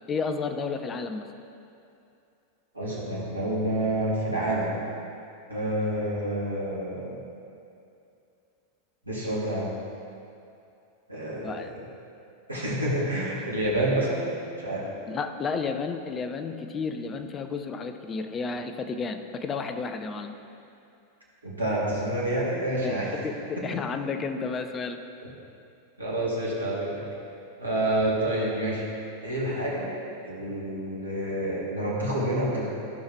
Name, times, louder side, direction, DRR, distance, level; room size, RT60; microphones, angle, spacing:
voice 1, 0.1-1.3 11.4-11.7 15.1-20.3 22.7-25.0, left 4 dB, 25° left, 7 dB, 0.6 m, -32 dB
voice 2, 2.7-4.8 5.5-7.2 9.1-9.7 11.1-11.8 12.5-14.9 21.4-23.2 23.6-23.7 26.0-27.0 27.6-28.9 29.2-29.9 30.2-32.7, right 1 dB, 80° right, -6 dB, 2.1 m, -28 dB
14.5 x 5.5 x 3.1 m, 2.6 s
figure-of-eight pair, 90°, 0 cm